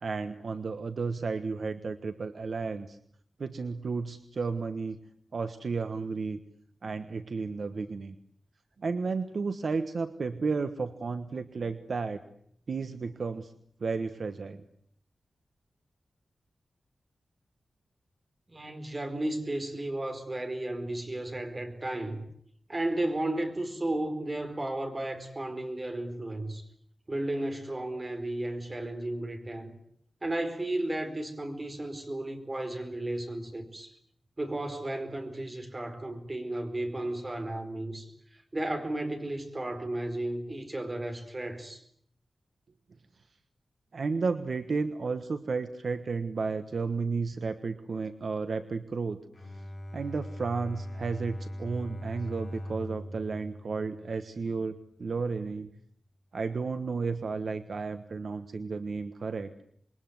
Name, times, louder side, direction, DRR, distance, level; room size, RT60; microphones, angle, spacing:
voice 1, 0.0-3.0 3.4-5.0 5.3-6.4 6.8-8.1 8.8-12.2 12.7-13.5 13.8-14.6 43.9-49.2 49.9-55.7 56.3-59.5, right 4 dB, 55° right, 9 dB, 1.3 m, -33 dB
voice 2, 18.5-22.3 22.7-26.6 27.1-29.7 30.2-33.9 34.4-41.8, right 1 dB, 25° right, 7 dB, 4.6 m, -34 dB
Bowed string instrument, 49.3-54.6, equal, 20° left, 5.6 m, -40 dB
27.0 x 22.5 x 9.5 m, 0.67 s
wide cardioid pair, 140°, 0 cm